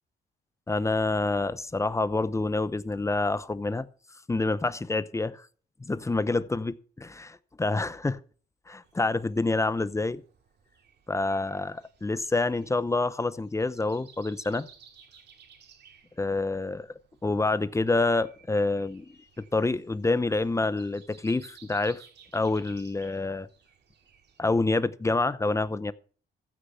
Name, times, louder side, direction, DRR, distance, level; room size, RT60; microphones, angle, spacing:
voice 1, 0.7-3.9 4.3-5.5 5.8-8.2 8.7-10.2 11.1-14.7 16.2-22.0 22.3-23.5 24.4-25.9, left 3 dB, 15° left, 0.7 m, -27 dB
Breathing, 8.8-24.4, right 7 dB, 60° right, 2.3 m, -58 dB
15.0 x 6.7 x 5.7 m
cardioid pair, 90°, 20 cm